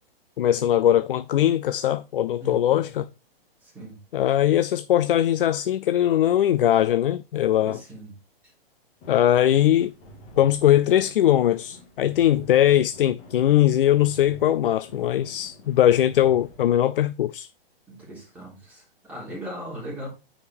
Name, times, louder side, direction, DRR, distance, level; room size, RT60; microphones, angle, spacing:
voice 1, 0.4-3.0 4.1-7.8 9.1-9.9 10.4-17.5, left 11 dB, 65° left, 0.5 m, -20 dB
voice 2, 3.6-4.0 7.6-8.1 17.9-20.1, equal, 5° right, 3.6 m, -38 dB
sound 1, 9.0-16.8, equal, 20° left, 1.8 m, -48 dB
9.3 x 5.0 x 3.6 m
hypercardioid pair, 170°, 30 cm